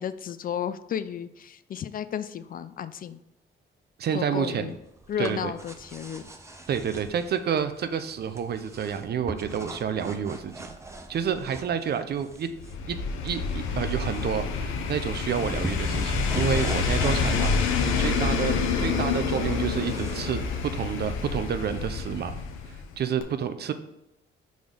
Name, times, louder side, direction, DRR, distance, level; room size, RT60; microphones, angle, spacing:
voice 1, 0.0-3.2 4.1-4.8 5.1-6.2, left 8 dB, 45° left, 13 dB, 0.4 m, -33 dB
voice 2, 4.0-4.7 5.2-5.5 6.7-10.7 11.1-12.5 12.9-13.0 13.2-22.4 23.0-23.7, right 8 dB, 55° right, 10 dB, 0.6 m, -29 dB
sound 1, 4.7-20.2, right 2 dB, 15° right, 0.8 m, -42 dB
sound 2, 12.6-22.9 23.2-23.3, left 5 dB, 90° left, 0.8 m, -27 dB
5.0 x 3.9 x 5.2 m, 0.89 s
cardioid pair, 90°, 20 cm